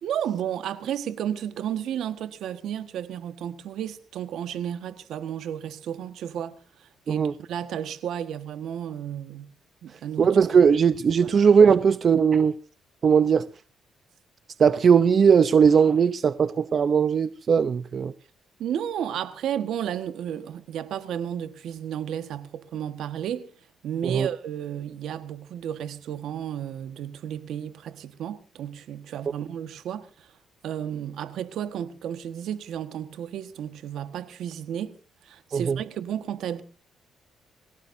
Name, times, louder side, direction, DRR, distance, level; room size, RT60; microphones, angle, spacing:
voice 1, 0.0-9.5 9.8-10.4 11.2-11.3 18.6-23.5 23.8-30.4 30.6-35.0 35.2-36.6, right 9 dB, 75° right, 1.4 m, -33 dB
voice 2, 10.2-12.5 13.0-13.4 14.6-18.1 24.0-24.3 35.5-35.8, right 6 dB, 50° right, 0.7 m, -19 dB
27.5 x 16.5 x 2.7 m
cardioid pair, 90°, 0 cm